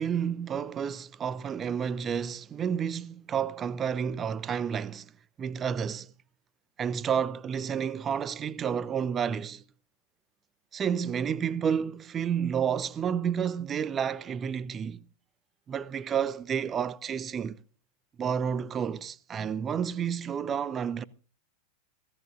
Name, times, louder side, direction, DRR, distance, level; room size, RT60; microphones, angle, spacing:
voice 1, 0.0-5.1 5.4-6.1 6.8-9.6 10.7-15.0 15.7-17.6 18.2-21.0, right 7 dB, 25° right, 0.7 m, -30 dB
24.5 x 15.0 x 2.5 m
figure-of-eight pair, 90°, 0 cm